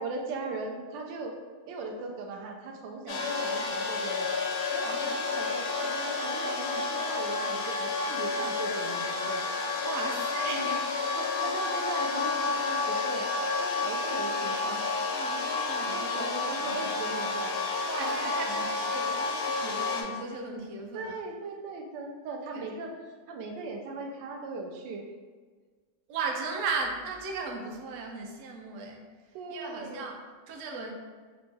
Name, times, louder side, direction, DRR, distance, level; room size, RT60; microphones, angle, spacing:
voice 1, 0.0-1.3 1.7-4.3 4.7-9.5 10.5-10.8 11.2-13.3 13.6-14.8 15.8-17.5 18.0-18.7 20.9-22.9 23.3-25.1 29.3-30.0, right 3 dB, 90° right, 2 dB, 1.3 m, -38 dB
sound 1, 3.1-20.0, left 3 dB, 85° left, 1.3 m, -30 dB
voice 2, 4.8-5.5 9.8-10.9 15.1-16.9 17.8-21.1 22.5-22.8 26.1-29.0 29.5-30.9, right 4 dB, 75° right, 1 dB, 0.7 m, -37 dB
4.4 x 2.0 x 3.2 m, 1.5 s
omnidirectional pair, 1.9 m